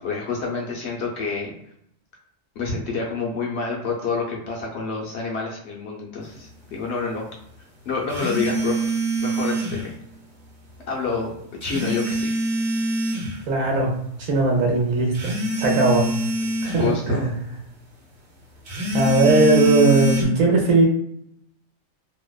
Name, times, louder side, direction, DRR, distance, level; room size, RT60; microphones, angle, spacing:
voice 1, 0.0-1.5 2.6-7.2 7.9-8.8 9.2-9.9 10.9-11.3 11.6-12.4 16.8-17.3, left 4 dB, 65° left, -1 dB, 0.8 m, -28 dB
sound 1, 8.1-9.9 11.6-13.3 15.2-16.9 18.7-20.2, right 1 dB, 50° right, 1.0 m, -24 dB
voice 2, 13.5-13.9 14.2-16.1 16.6-17.3 18.9-20.9, right 2 dB, 75° right, 0 dB, 1.1 m, -19 dB
2.7 x 2.1 x 2.2 m, 0.73 s
omnidirectional pair, 1.4 m